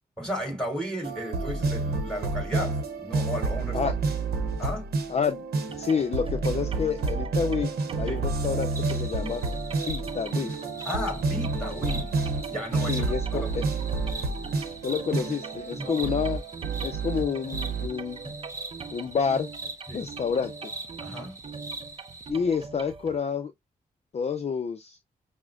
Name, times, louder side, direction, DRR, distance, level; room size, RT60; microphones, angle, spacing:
voice 1, 0.2-3.9 4.6-4.9 8.1-8.2 10.8-12.1 12.5-13.7 15.7-16.2 19.9-20.1 21.0-21.4, equal, 5° left, 2.9 m, -34 dB
sound 1, 1.0-17.9, right 3 dB, 85° right, 0.8 m, -30 dB
voice 2, 5.1-5.4 5.8-7.7 8.0-9.4 9.9-10.5 12.9-13.6 14.8-16.4 16.8-18.3 18.9-19.5 19.9-20.7 22.3-23.5 24.1-25.0, left 6 dB, 45° left, 0.5 m, -29 dB
sound 2, 5.7-23.2, right 5 dB, 35° right, 0.5 m, -42 dB
sound 3, 8.7-22.3, right 3 dB, 20° right, 1.3 m, -42 dB
5.9 x 2.1 x 2.3 m
cardioid pair, 65°, 16 cm